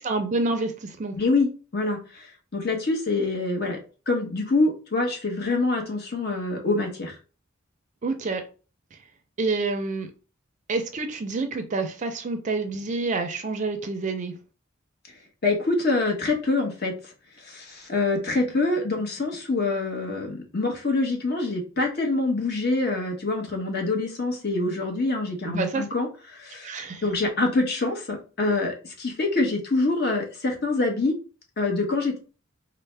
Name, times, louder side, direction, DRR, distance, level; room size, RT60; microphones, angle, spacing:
voice 1, 0.0-1.1 8.0-8.4 9.4-10.1 10.7-14.3 25.5-25.8 26.6-27.0, right 3 dB, 35° right, 6 dB, 0.4 m, -28 dB
voice 2, 1.2-2.3 2.5-3.8 4.1-7.2 15.4-17.1 17.4-26.7 27.0-31.2 31.6-32.2, left 3 dB, 50° left, 1 dB, 1.0 m, -25 dB
4.1 x 2.0 x 3.2 m, 0.35 s
head